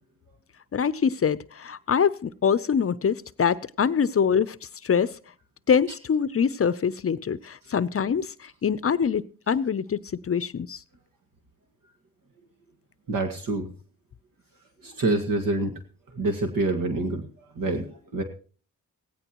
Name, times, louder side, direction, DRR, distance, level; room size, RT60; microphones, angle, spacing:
voice 1, 0.7-4.6 4.8-5.2 5.7-10.8, left 7 dB, 40° left, 0.6 m, -24 dB
voice 2, 13.1-13.7 14.8-15.7 16.1-17.3 17.6-18.2, right 2 dB, 65° right, 2.0 m, -26 dB
16.5 x 15.5 x 3.0 m
cardioid pair, 65°, 36 cm